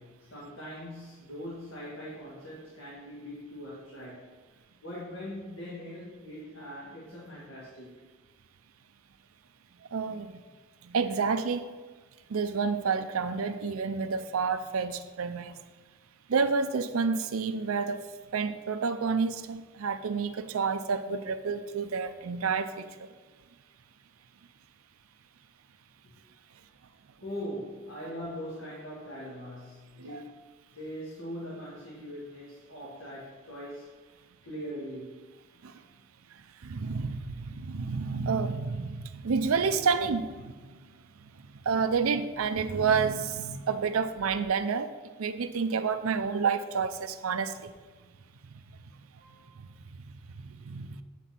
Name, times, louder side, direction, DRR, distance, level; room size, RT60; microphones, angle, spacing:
voice 1, 0.0-4.3 4.8-7.9 26.0-26.1 27.2-30.4 30.7-33.9 34.4-35.1 49.2-49.5 50.8-50.9, equal, 70° left, -6 dB, 1.9 m, -41 dB
voice 2, 9.9-10.4 10.8-11.7 12.3-15.6 16.3-18.0 18.3-23.1 30.0-30.2 35.6-35.8 36.6-40.8 41.2-44.9 45.2-47.7 48.5-48.6 49.9-51.0, right 5 dB, 90° right, 11 dB, 0.5 m, -29 dB
9.2 x 4.0 x 5.8 m, 1.4 s
head